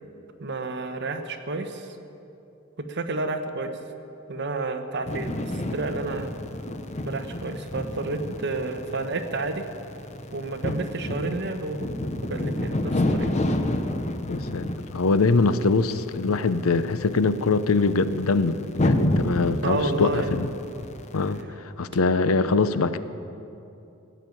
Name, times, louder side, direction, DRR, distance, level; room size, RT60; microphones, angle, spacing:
voice 1, 0.4-1.9 2.8-3.8 4.3-6.3 7.0-9.7 10.3-11.9 12.2-13.4 19.6-20.3, right 3 dB, 55° right, 6 dB, 1.1 m, -30 dB
sound 1, 5.1-21.4, left 1 dB, 35° left, 0.8 m, -30 dB
voice 2, 14.3-20.5 21.1-23.0, left 3 dB, 90° left, 13 dB, 0.6 m, -23 dB
17.5 x 7.3 x 9.4 m, 2.8 s
head